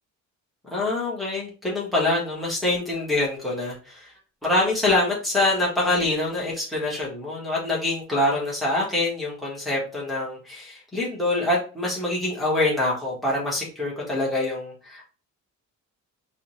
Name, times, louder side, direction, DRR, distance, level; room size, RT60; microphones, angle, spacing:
voice 1, 0.7-4.1 4.4-15.0, left 2 dB, ahead, -6 dB, 1.4 m, -25 dB
4.8 x 2.4 x 3.1 m, 0.35 s
cardioid pair, 175°, 32 cm